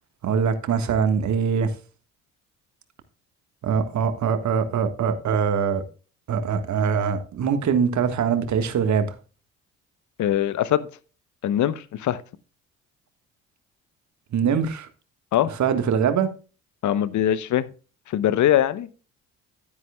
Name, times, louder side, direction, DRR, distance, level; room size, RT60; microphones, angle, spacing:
voice 1, 0.2-1.7 3.6-5.8 6.3-9.1 14.3-14.9 15.6-16.3, right 6 dB, 50° right, 1.5 m, -23 dB
voice 2, 10.2-10.9 11.4-12.2 15.3-15.5 16.8-17.7 18.1-18.9, left 11 dB, 50° left, 0.8 m, -22 dB
11.0 x 9.5 x 2.3 m
hypercardioid pair, 55°, 37 cm